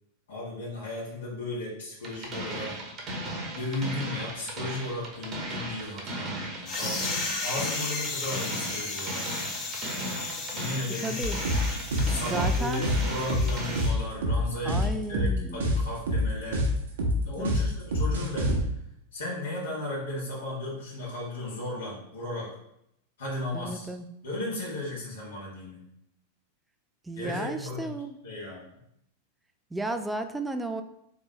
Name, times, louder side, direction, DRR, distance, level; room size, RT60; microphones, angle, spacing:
voice 1, 0.3-2.8 3.5-9.2 10.5-11.2 12.0-16.6 17.2-18.6 19.1-22.5 23.2-23.9 24.2-25.8 27.1-27.9 28.2-28.7, left 2 dB, 65° left, -5 dB, 1.3 m, -35 dB
sound 1, 2.0-14.0, right 1 dB, 25° right, 0.9 m, -36 dB
sound 2, 6.7-13.9, left 3 dB, 30° left, 0.9 m, -35 dB
voice 2, 11.0-11.4 12.2-12.8 14.6-15.7 17.4-17.6 23.5-24.1 27.1-28.2 29.7-30.8, right 2 dB, 10° right, 8 dB, 0.3 m, -33 dB
sound 3, 11.2-18.6, left 1 dB, 60° right, 0.8 m, -26 dB
4.0 x 3.1 x 3.3 m, 0.77 s
figure-of-eight pair, 90°, 0 cm